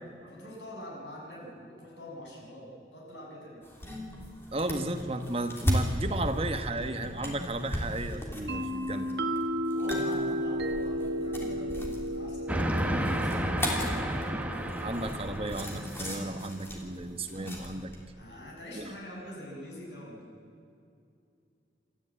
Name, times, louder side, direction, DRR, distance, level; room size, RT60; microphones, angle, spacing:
voice 1, 0.2-3.7 9.0-9.3 9.6-13.7 18.2-20.4, equal, 90° left, -2 dB, 6.8 m, -45 dB
sound 1, 3.6-18.0, equal, 15° left, 3.1 m, -37 dB
voice 2, 4.5-9.1 14.8-17.9 18.7-18.9, right 2 dB, 30° right, 8 dB, 1.1 m, -34 dB
sound 2, 8.5-16.1, equal, 80° right, 1.7 m, -34 dB
Train, 12.5-16.4, right 1 dB, 10° right, 1.1 m, -31 dB
28.0 x 12.5 x 8.6 m, 2.5 s
head